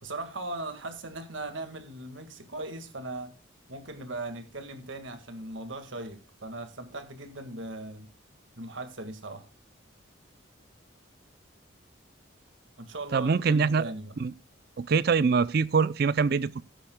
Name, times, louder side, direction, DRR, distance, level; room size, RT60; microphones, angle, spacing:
voice 1, 0.0-3.3 3.7-8.1 8.6-9.5 12.8-14.1, right 2 dB, 75° right, 1.8 m, -39 dB
voice 2, 13.1-13.9 14.2-14.3 14.8-16.6, right 5 dB, 50° right, 0.4 m, -24 dB
15.5 x 10.0 x 2.2 m
head